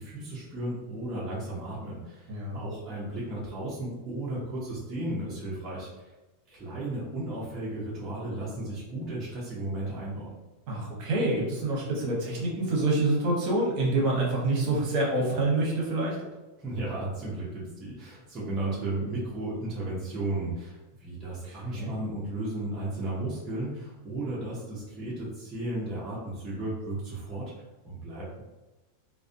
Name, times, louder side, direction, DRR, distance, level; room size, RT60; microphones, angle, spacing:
voice 1, 0.0-2.3 2.5-5.9 6.5-10.3 16.6-27.5 27.8-28.4, right 2 dB, 20° right, -8 dB, 0.6 m, -34 dB
voice 2, 2.3-2.6 10.7-16.2 21.4-21.9, right 2 dB, 50° right, -3 dB, 0.9 m, -27 dB
2.3 x 2.1 x 2.6 m, 1.1 s
supercardioid pair, 150°, 0 cm